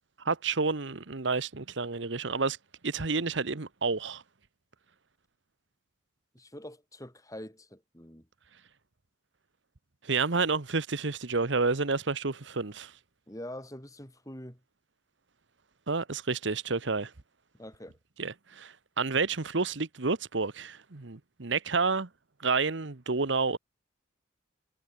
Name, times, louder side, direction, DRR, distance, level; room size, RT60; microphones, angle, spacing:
voice 1, 0.2-2.6 2.8-4.2 10.0-12.9 15.9-17.1 18.2-22.1 22.4-23.6, right 4 dB, 70° right, 1.1 m, -30 dB
voice 2, 6.3-8.3 13.3-14.6 17.6-18.0, left 1 dB, 15° left, 7.8 m, -44 dB
head